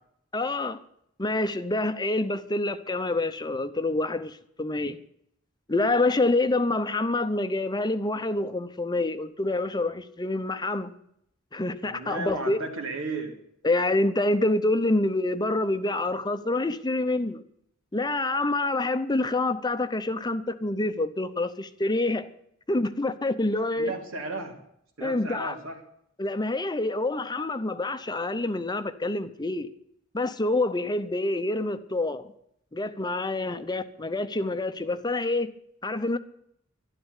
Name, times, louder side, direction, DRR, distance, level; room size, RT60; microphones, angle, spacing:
voice 1, 0.3-0.8 1.2-5.0 5.7-10.9 11.5-12.6 13.6-17.4 17.9-22.3 22.7-23.9 25.0-25.6 26.2-29.7 30.1-32.3 32.7-35.5 35.8-36.2, left 2 dB, 20° left, 0.8 m, -27 dB
voice 2, 11.8-13.3 23.8-24.6 25.0-25.8, right 2 dB, 80° right, 3.3 m, -34 dB
12.5 x 11.5 x 8.2 m
head